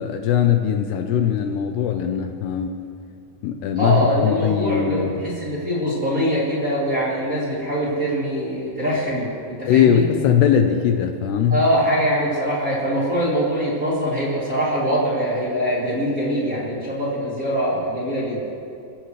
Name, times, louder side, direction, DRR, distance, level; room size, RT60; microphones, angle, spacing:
voice 1, 0.0-2.7 3.4-5.2 9.7-11.6, left 8 dB, 80° left, 5 dB, 2.7 m, -20 dB
voice 2, 3.8-10.0 11.5-18.4, equal, 25° right, -7 dB, 2.5 m, -23 dB
28.0 x 15.0 x 3.2 m, 2.5 s
omnidirectional pair, 5.2 m